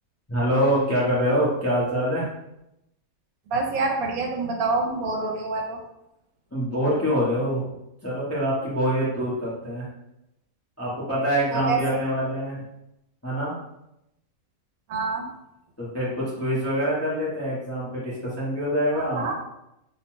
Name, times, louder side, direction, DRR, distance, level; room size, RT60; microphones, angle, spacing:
voice 1, 0.3-2.2 6.5-7.7 8.0-9.8 10.8-12.6 13.2-13.5 15.8-19.3, equal, 20° left, -8 dB, 0.4 m, -25 dB
voice 2, 3.5-5.8 11.5-12.0 14.9-15.2 18.9-19.3, right 3 dB, 80° right, 1 dB, 1.0 m, -26 dB
2.7 x 2.1 x 3.0 m, 0.85 s
omnidirectional pair, 1.5 m